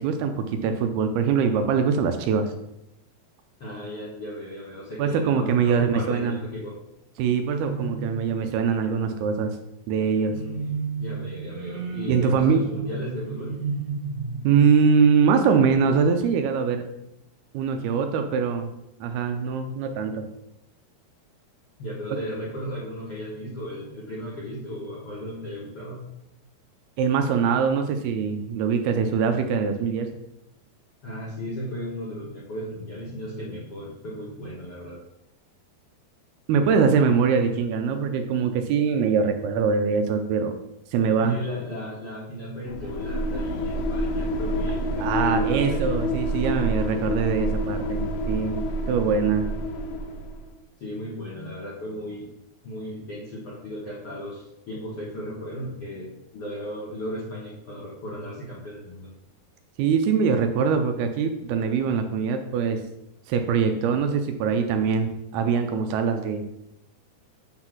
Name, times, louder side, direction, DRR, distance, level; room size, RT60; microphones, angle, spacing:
voice 1, 0.0-2.5 5.0-6.4 7.2-9.6 9.9-10.4 12.1-12.6 14.4-16.9 17.5-18.7 19.0-20.3 22.1-22.2 27.0-30.1 36.5-40.6 40.9-41.4 45.0-49.5 59.8-62.8 63.3-66.6, right 6 dB, 80° right, 6 dB, 2.4 m, -23 dB
voice 2, 3.6-6.8 10.3-10.6 11.0-13.6 21.8-26.1 31.0-35.0 41.2-45.8 50.8-52.3 52.6-59.1, equal, 65° left, -6 dB, 1.4 m, -35 dB
sound 1, 7.6-8.7 10.3-16.8, right 4 dB, 50° right, 2.1 m, -34 dB
sound 2, 42.7-50.5, equal, 85° left, 3.1 m, -27 dB
8.7 x 3.9 x 5.9 m, 0.85 s
omnidirectional pair, 4.8 m